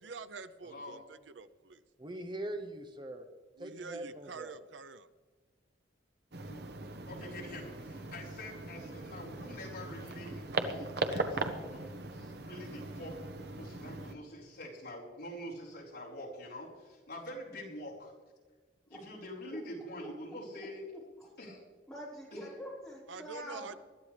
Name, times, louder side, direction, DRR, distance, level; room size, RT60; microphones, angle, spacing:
voice 1, 0.0-1.8 3.6-5.1 23.1-23.7, right 4 dB, 90° right, 12 dB, 0.7 m, -46 dB
voice 2, 0.6-1.0 6.5-6.6 7.0-13.2 13.6-18.1 18.9-20.8 21.4-21.6 22.3-22.5, left 1 dB, 65° left, -5 dB, 4.7 m, -46 dB
voice 3, 2.0-3.2 3.6-4.6, right 1 dB, 25° right, 5 dB, 0.8 m, -41 dB
sound 1, 6.3-14.1, right 2 dB, 60° right, 1.1 m, -39 dB
voice 4, 20.0-21.0 21.9-23.7, equal, 5° left, -7 dB, 5.2 m, -46 dB
20.5 x 12.5 x 3.4 m, 1.4 s
head